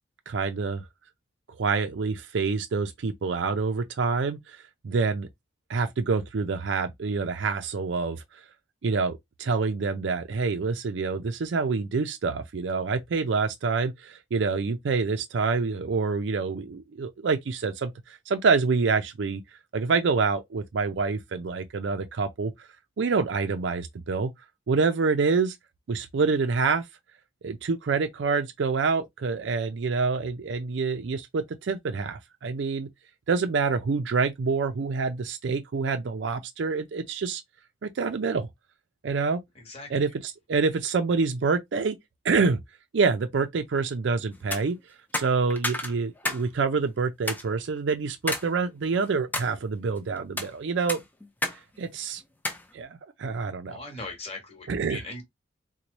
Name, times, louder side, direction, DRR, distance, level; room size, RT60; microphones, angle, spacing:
voice 1, 0.3-0.8 1.6-4.6 4.8-5.3 5.7-8.2 8.8-19.4 19.7-22.5 23.0-24.3 24.7-25.6 25.9-26.9 27.4-32.9 33.3-37.4 37.8-38.5 39.0-39.4 39.9-42.0 42.2-42.6 42.9-44.8 45.1-51.0 51.5-52.2 52.7-53.8 54.7-55.0, right 4 dB, 65° right, 0.4 m, -27 dB
voice 2, 39.5-39.9 53.7-55.2, left 2 dB, 30° left, 1.3 m, -39 dB
sound 1, 44.4-44.6 45.1-46.5 46.8-46.9 47.3-47.4 48.3-48.5 48.9-49.5 50.2-50.5 50.9-51.6 51.8-52.0 52.4-52.6, left 1 dB, 10° left, 0.5 m, -30 dB
3.0 x 2.2 x 3.9 m
head